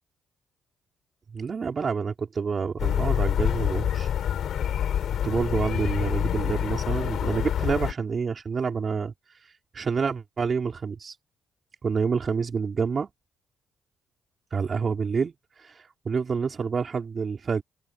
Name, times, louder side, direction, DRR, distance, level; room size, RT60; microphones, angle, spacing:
voice 1, 1.3-4.1 5.2-9.1 9.7-11.1 11.8-13.1 14.5-17.6, right 5 dB, 40° right, 5.1 m, -28 dB
sound 1, 2.8-7.9, left 9 dB, 70° left, 5.5 m, -26 dB
open air
cardioid pair, 90°, 0 cm